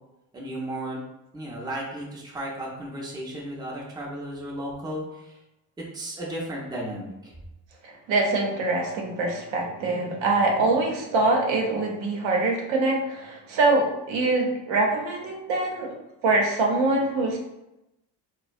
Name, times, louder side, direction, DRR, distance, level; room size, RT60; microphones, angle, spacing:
voice 1, 0.3-1.0 1.3-5.4 5.8-7.3, right 1 dB, 10° right, -3 dB, 0.5 m, -34 dB
voice 2, 7.8-15.9 16.2-17.4, right 2 dB, 75° right, 0 dB, 0.7 m, -24 dB
2.5 x 2.1 x 2.4 m, 0.93 s
cardioid pair, 85°, 46 cm